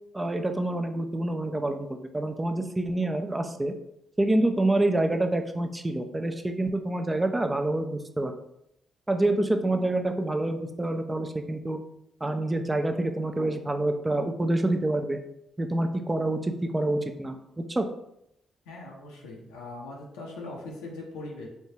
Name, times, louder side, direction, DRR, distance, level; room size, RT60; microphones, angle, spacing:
voice 1, 0.1-3.7 4.2-8.3 9.1-11.8 12.2-15.2 15.6-17.8, right 1 dB, 20° right, 6 dB, 0.4 m, -27 dB
voice 2, 18.7-21.5, left 2 dB, 90° left, -2 dB, 0.6 m, -40 dB
3.3 x 2.8 x 2.8 m, 0.78 s
hypercardioid pair, 45°, 0 cm